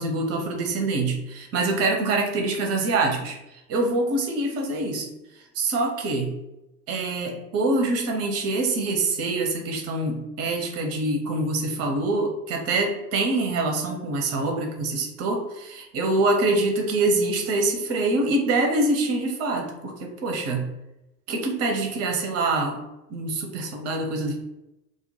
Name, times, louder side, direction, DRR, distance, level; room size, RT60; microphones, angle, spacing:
voice 1, 0.0-6.3 6.9-20.7 21.3-22.8 23.1-24.4, right 2 dB, 30° right, 2 dB, 0.6 m, -25 dB
2.3 x 2.1 x 2.7 m, 0.91 s
figure-of-eight pair, 75°, 50 cm